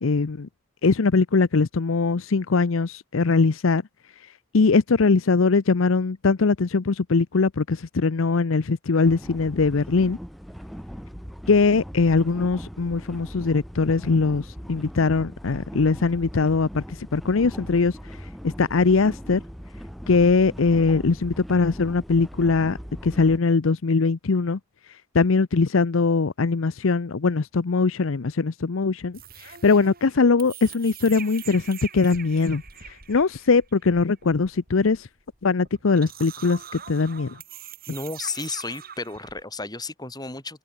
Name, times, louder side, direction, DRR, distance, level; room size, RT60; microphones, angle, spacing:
voice 1, 0.0-0.5 0.8-3.8 4.5-10.2 11.5-16.8 17.1-18.0 18.4-19.4 20.1-22.8 23.0-24.6 25.1-35.1 35.4-37.3, left 4 dB, 70° left, 0.7 m, -21 dB
sound 1, 9.0-23.4, equal, ahead, 4.0 m, -40 dB
sound 2, 29.1-39.4, right 8 dB, 45° right, 7.6 m, -43 dB
voice 2, 37.9-40.6, left 3 dB, 20° left, 5.9 m, -33 dB
head